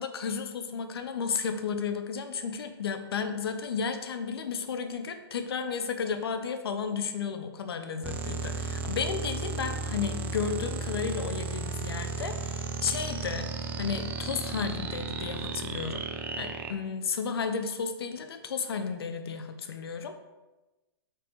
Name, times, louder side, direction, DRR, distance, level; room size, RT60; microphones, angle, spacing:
voice 1, 0.0-13.5 13.8-16.1 16.4-20.1, left 6 dB, 70° left, 7 dB, 1.0 m, -33 dB
sound 1, 8.0-16.7, right 4 dB, 15° right, 0.5 m, -34 dB
5.9 x 5.4 x 4.8 m, 1.1 s
hypercardioid pair, 145°, 13 cm